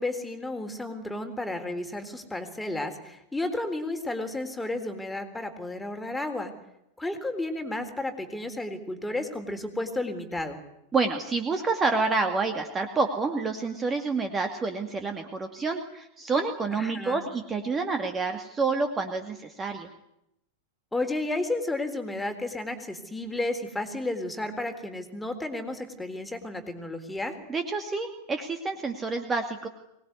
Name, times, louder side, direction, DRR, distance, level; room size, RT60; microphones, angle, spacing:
voice 1, 0.0-6.5 7.0-10.6 16.7-17.2 20.9-27.3, left 2 dB, 5° left, 6 dB, 3.9 m, -32 dB
voice 2, 10.9-19.9 27.5-29.7, right 4 dB, 20° right, 6 dB, 2.4 m, -28 dB
24.5 x 20.0 x 9.7 m, 0.83 s
figure-of-eight pair, 90°, 0 cm